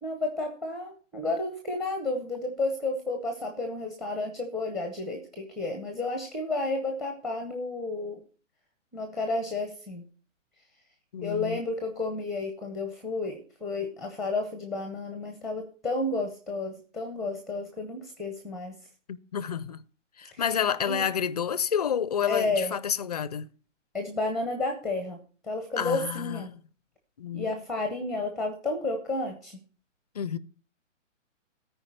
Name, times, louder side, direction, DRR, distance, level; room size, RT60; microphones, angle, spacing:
voice 1, 0.0-8.2 8.9-10.0 11.2-18.7 20.3-20.4 20.8-21.0 22.3-22.7 23.9-26.5 27.3-29.6, left 2 dB, ahead, 0.7 m, -31 dB
voice 2, 11.1-11.6 19.1-19.8 20.2-23.5 25.8-26.6 27.2-27.5 30.1-30.4, left 8 dB, 35° left, 0.4 m, -29 dB
13.5 x 4.8 x 6.2 m
hypercardioid pair, 145°, 38 cm